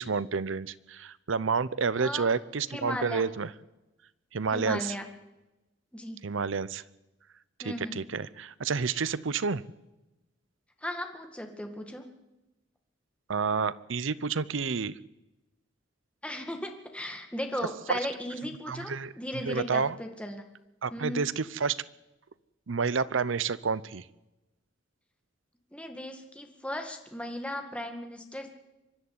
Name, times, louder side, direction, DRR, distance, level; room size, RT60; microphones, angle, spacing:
voice 1, 0.0-3.5 4.3-4.9 6.2-6.8 7.6-9.6 13.3-14.9 17.9-18.0 18.7-19.1 19.4-20.0 20.8-21.8 22.7-24.0, right 5 dB, 75° right, 18 dB, 0.7 m, -29 dB
voice 2, 2.0-2.3 2.7-3.2 4.5-5.1 5.9-6.2 7.6-8.0 10.8-12.1 16.2-20.4 20.9-21.2 25.7-28.5, left 1 dB, 5° left, 5 dB, 1.9 m, -36 dB
24.0 x 11.0 x 9.6 m, 0.99 s
head